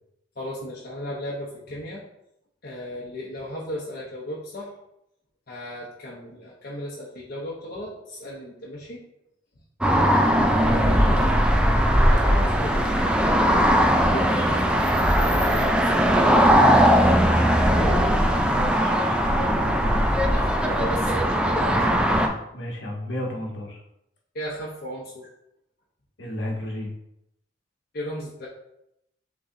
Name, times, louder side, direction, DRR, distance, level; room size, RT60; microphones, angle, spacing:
voice 1, 0.4-2.0 2.6-4.7 5.5-9.0 12.1-13.2 15.2-16.8 20.3-21.7 24.3-25.3 27.9-28.5, equal, 55° left, -5 dB, 0.8 m, -35 dB
sound 1, 9.8-22.3, equal, 5° right, 0.4 m, -19 dB
voice 2, 10.5-11.3 14.1-14.5 17.6-20.1 22.5-23.8 26.2-26.9, equal, 70° left, 0 dB, 1.1 m, -33 dB
6.1 x 3.1 x 2.7 m, 0.80 s
head